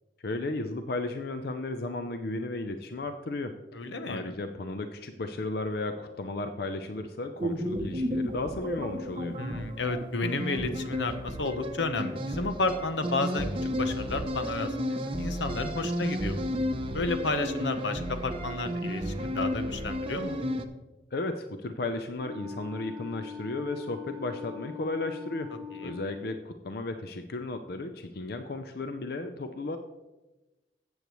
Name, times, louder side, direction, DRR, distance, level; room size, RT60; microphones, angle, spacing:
voice 1, 0.2-3.8 4.1-9.4 21.1-25.5 25.8-29.8, left 2 dB, 60° left, 8 dB, 0.5 m, -34 dB
voice 2, 3.7-4.3 9.4-16.5 16.9-20.4 25.7-26.0, left 3 dB, 85° left, 7 dB, 0.9 m, -32 dB
sound 1, 7.4-20.6, equal, 30° right, 0.7 m, -33 dB
Wind instrument woodwind instrument, 22.2-26.4, left 6 dB, 20° left, 2.1 m, -42 dB
13.5 x 8.0 x 3.1 m, 1.1 s
head